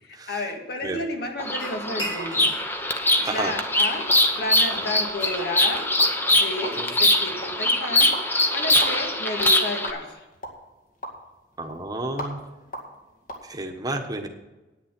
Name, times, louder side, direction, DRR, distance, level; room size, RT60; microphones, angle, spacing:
voice 1, 0.0-2.6 2.9-5.9 6.3-8.1 8.5-10.2, left 1 dB, 65° left, 3 dB, 1.9 m, -32 dB
sound 1, 1.3-13.4, equal, 50° left, 2.3 m, -42 dB
Bird vocalization bird call bird song, 1.4-9.9, left 1 dB, 10° left, 0.9 m, -22 dB
sound 2, 1.6-2.7 3.0-4.3 4.6-7.3, equal, 30° left, 5.1 m, -39 dB
voice 2, 11.6-12.4 13.4-14.3, right 2 dB, 20° right, 4 dB, 1.3 m, -31 dB
10.0 x 9.6 x 6.1 m, 1.1 s
head